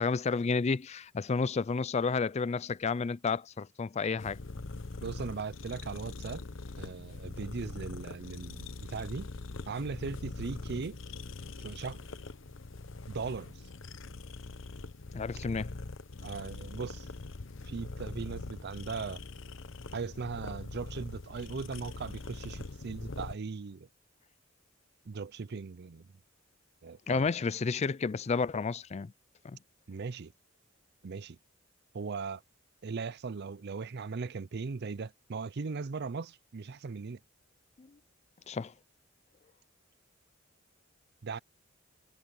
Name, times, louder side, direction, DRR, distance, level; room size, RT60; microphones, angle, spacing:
voice 1, 0.0-4.4 15.1-15.7 27.1-29.1 29.4-29.6 37.8-38.0 38.5-38.7, left 4 dB, 35° left, 0.4 m, -31 dB
sound 1, 4.2-23.4, left 3 dB, 70° left, 1.0 m, -43 dB
voice 2, 5.0-6.4 6.8-9.3 9.7-11.0 11.6-12.1 13.1-13.5 16.2-17.1 17.6-19.2 19.9-23.9 25.1-26.1 26.8-27.2 29.9-30.3 31.0-31.4 31.9-32.4 32.8-37.2 41.2-41.4, right 4 dB, 55° right, 0.5 m, -38 dB
head